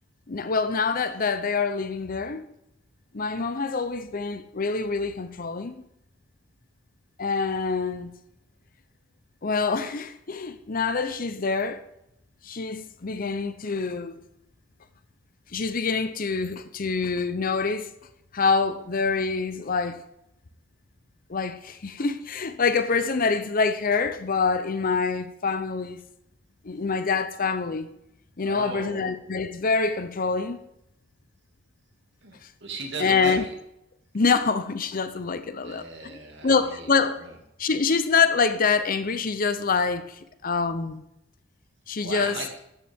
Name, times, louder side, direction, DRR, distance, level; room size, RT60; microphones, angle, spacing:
voice 1, 0.3-2.5 3.1-5.8 7.2-8.1 9.4-11.8 12.4-14.2 15.5-17.9 18.3-20.0 21.3-26.0 26.6-27.9 28.4-30.6 33.0-33.5 34.1-37.2 37.6-41.0 41.9-42.4, left 4 dB, 45° left, 0.7 m, -26 dB
voice 2, 28.4-29.1 32.2-33.5 35.6-36.9 37.2-37.3 42.0-42.6, right 3 dB, 60° right, 2.3 m, -37 dB
13.0 x 9.2 x 3.6 m
head